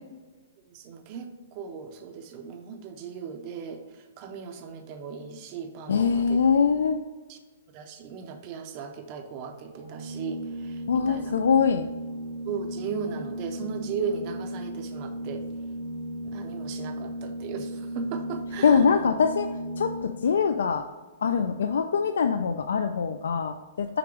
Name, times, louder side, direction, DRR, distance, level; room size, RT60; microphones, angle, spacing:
voice 1, 0.7-3.8 4.2-6.4 7.3-7.4 7.7-11.4 12.4-15.4 16.2-19.0, right 6 dB, 25° right, 6 dB, 0.5 m, -37 dB
voice 2, 5.9-7.0 10.9-11.9 18.6-19.5 19.8-20.8 21.2-24.0, left 6 dB, 85° left, 7 dB, 0.4 m, -23 dB
Organ, 9.7-20.5, right 1 dB, 70° right, 1.1 m, -36 dB
5.9 x 4.0 x 4.8 m, 1.3 s
hypercardioid pair, 180°, 0 cm